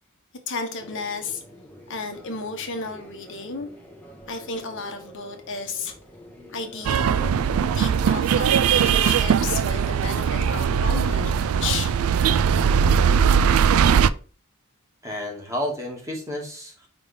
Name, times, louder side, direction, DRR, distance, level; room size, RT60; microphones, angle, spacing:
voice 1, 0.5-1.4 1.9-3.7 4.3-5.9 6.5-7.3 7.7-11.9, left 4 dB, 65° left, 1.2 m, -33 dB
sound 1, 0.8-14.1, equal, 10° left, 1.3 m, -46 dB
sound 2, 6.9-14.1, right 7 dB, 85° right, 0.3 m, -20 dB
voice 2, 15.0-16.9, left 1 dB, 15° right, 2.2 m, -31 dB
5.1 x 3.8 x 5.0 m
head